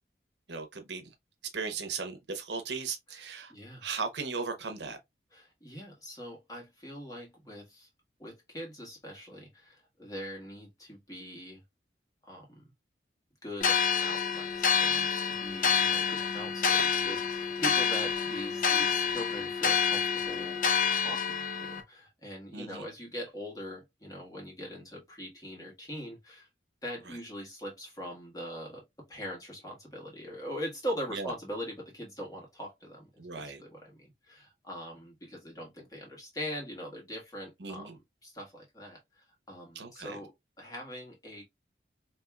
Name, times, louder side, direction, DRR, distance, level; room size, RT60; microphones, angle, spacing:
voice 1, 0.5-1.1 1.5-3.5 3.8-5.0 22.5-22.9 27.1-27.2 31.1-31.3 33.2-33.6 37.6-37.9 39.7-40.2, right 4 dB, 85° right, 0.9 m, -37 dB
voice 2, 3.1-3.9 5.3-7.9 8.2-11.6 12.2-12.7 13.4-20.6 21.0-26.5 26.8-41.4, equal, 20° left, 1.5 m, -42 dB
sound 1, 13.6-21.8, left 6 dB, 50° left, 0.6 m, -28 dB
4.4 x 2.9 x 2.3 m
head